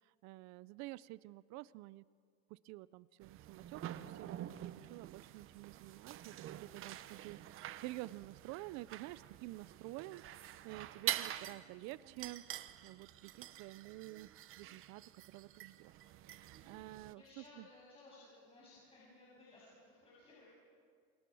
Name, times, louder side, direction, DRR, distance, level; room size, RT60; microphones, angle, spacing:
voice 1, 0.2-2.0 2.5-12.4 12.8-15.0 15.3-15.9 16.2-17.7, right 19 dB, 65° right, 19 dB, 0.6 m, -50 dB
sound 1, 3.2-17.1, right 13 dB, 45° right, 1.0 m, -47 dB
voice 2, 16.6-20.5, left 2 dB, 20° left, -7 dB, 7.5 m, -60 dB
29.5 x 27.5 x 6.3 m, 2.1 s
cardioid pair, 150°, 30 cm